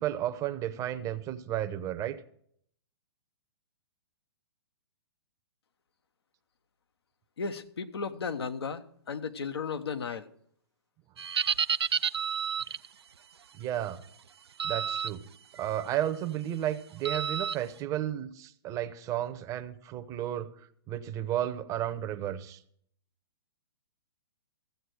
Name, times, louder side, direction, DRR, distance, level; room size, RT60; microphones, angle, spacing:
voice 1, 0.0-2.2 13.6-14.0 14.6-15.2 15.6-20.5 20.9-22.6, right 12 dB, 25° right, 0.8 m, -33 dB
voice 2, 7.4-10.3, left 5 dB, 75° left, 1.1 m, -35 dB
sound 1, 11.2-12.9 14.6-15.1 15.6-15.8 17.0-17.6, right 7 dB, 80° right, 0.5 m, -30 dB
14.5 x 8.0 x 6.4 m
hypercardioid pair, 125°, 13 cm